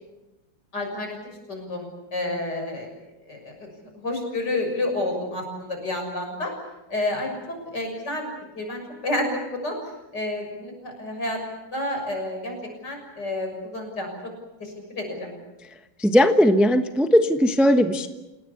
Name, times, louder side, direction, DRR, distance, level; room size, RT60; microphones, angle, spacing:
voice 1, 0.7-1.2 1.5-2.9 3.3-6.5 6.9-8.3 8.6-12.5 12.8-14.3 14.6-15.4, left 1 dB, 55° left, 3 dB, 7.2 m, -30 dB
voice 2, 16.0-18.1, equal, ahead, 7 dB, 0.7 m, -18 dB
28.0 x 19.0 x 8.4 m, 1.0 s
omnidirectional pair, 2.2 m